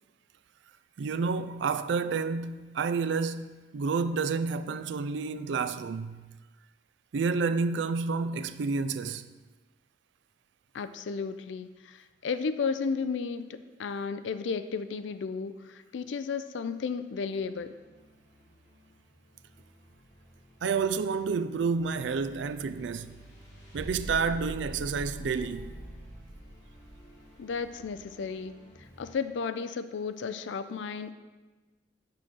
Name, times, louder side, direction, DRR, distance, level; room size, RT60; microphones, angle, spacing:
voice 1, 1.0-6.3 7.1-9.3 20.6-23.2 23.7-25.7, right 5 dB, 75° right, 0.4 m, -30 dB
voice 2, 10.7-17.7 27.4-28.6 29.0-31.1, left 5 dB, 85° left, 0.4 m, -33 dB
sound 1, 17.4-29.1, equal, 20° left, 2.4 m, -47 dB
8.5 x 3.8 x 6.2 m
head